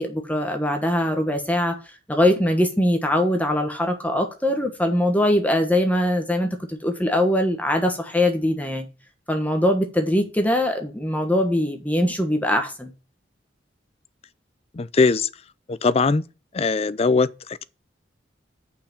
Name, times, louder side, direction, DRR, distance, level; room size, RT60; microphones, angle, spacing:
voice 1, 0.0-8.8 9.3-12.9, left 1 dB, 10° left, 1.2 m, -22 dB
voice 2, 14.7-15.3 15.7-16.2 16.5-17.6, left 4 dB, 35° left, 0.4 m, -21 dB
6.8 x 5.7 x 7.2 m
head